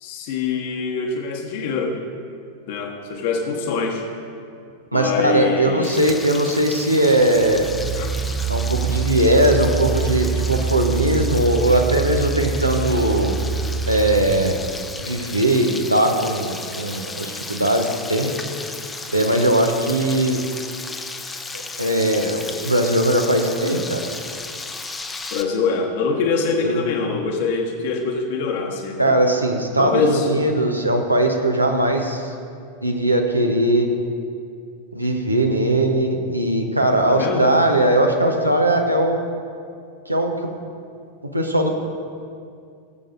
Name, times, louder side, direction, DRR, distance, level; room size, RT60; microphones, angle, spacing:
voice 1, 0.0-2.0 2.7-4.0 4.9-6.0 8.0-8.1 25.3-29.2 29.8-30.3 37.1-37.5, left 4 dB, 50° left, 1 dB, 1.4 m, -24 dB
voice 2, 4.9-7.6 8.5-13.4 13.9-14.6 15.0-18.3 19.1-20.4 21.5-24.1 26.6-27.1 29.0-32.3 32.8-33.9 34.9-39.2 40.1-40.4 41.3-41.7, right 1 dB, 85° right, 2 dB, 0.9 m, -19 dB
Frying (food), 5.8-25.4, left 3 dB, 15° left, 0.7 m, -34 dB
sound 1, 6.1-6.3 7.2-15.2, right 5 dB, 25° right, 0.3 m, -25 dB
19.0 x 7.8 x 2.7 m, 2.3 s
figure-of-eight pair, 90°, 0 cm